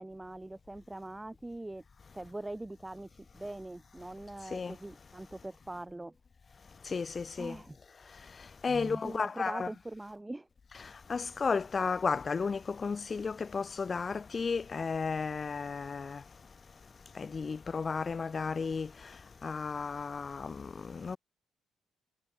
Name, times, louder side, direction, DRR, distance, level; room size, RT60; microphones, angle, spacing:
voice 1, 0.0-1.8 2.1-6.1 7.4-7.8 8.7-10.5, right 2 dB, 15° right, 0.4 m, -42 dB
voice 2, 6.9-7.6 8.6-9.7 11.1-16.2 17.2-18.9 19.4-21.2, left 5 dB, 35° left, 1.0 m, -33 dB
cardioid pair, 90°, 0 cm